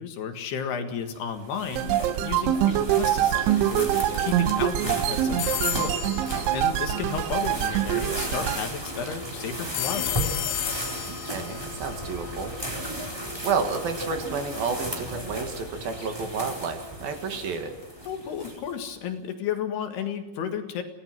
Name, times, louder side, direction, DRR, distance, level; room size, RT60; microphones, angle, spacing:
voice 1, 0.0-6.0 6.5-10.2 18.1-20.8, left 7 dB, 65° left, 6 dB, 3.6 m, -33 dB
sound 1, 1.1-18.9, equal, 5° right, 3.0 m, -35 dB
sound 2, 1.8-8.6, right 12 dB, 90° right, 3.4 m, -25 dB
sound 3, 5.4-7.4 9.7-12.8, left 13 dB, 85° left, 3.8 m, -33 dB
voice 2, 11.1-12.5 13.4-17.8, right 5 dB, 60° right, 5 dB, 3.5 m, -30 dB
28.0 x 18.5 x 6.2 m, 1.1 s
omnidirectional pair, 5.2 m